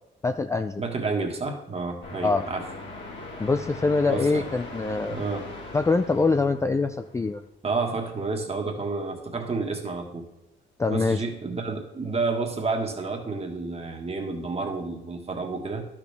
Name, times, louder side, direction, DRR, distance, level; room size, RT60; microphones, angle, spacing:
voice 1, 0.2-0.8 2.2-2.4 3.4-5.2 5.7-7.4 10.8-11.2, left 3 dB, 15° left, 8 dB, 0.3 m, -24 dB
voice 2, 0.8-2.7 4.1-4.5 5.1-5.5 7.6-10.3 10.9-15.8, right 3 dB, 30° right, 2 dB, 1.7 m, -30 dB
sound 1, 2.0-7.5, left 2 dB, 70° left, 2.6 m, -41 dB
11.5 x 6.1 x 3.4 m, 0.92 s
cardioid pair, 90°, 20 cm